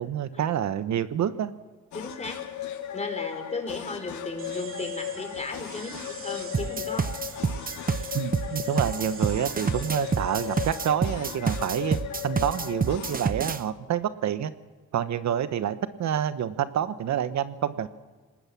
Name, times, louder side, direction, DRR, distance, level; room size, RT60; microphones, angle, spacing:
voice 1, 0.0-1.5 8.1-12.0 12.2-14.5 14.9-17.9, right 9 dB, 65° right, 12 dB, 1.2 m, -28 dB
sound 1, 1.9-13.2, left 11 dB, 70° left, 2.0 m, -36 dB
voice 2, 1.9-2.4 2.9-7.3, left 3 dB, 20° left, 6 dB, 4.5 m, -35 dB
sound 2, 4.4-10.8, right 6 dB, 45° right, 2.5 m, -45 dB
sound 3, 6.5-13.6, right 5 dB, 30° right, 1.0 m, -28 dB
25.5 x 20.0 x 6.0 m, 1.4 s
cardioid pair, 90°, 30 cm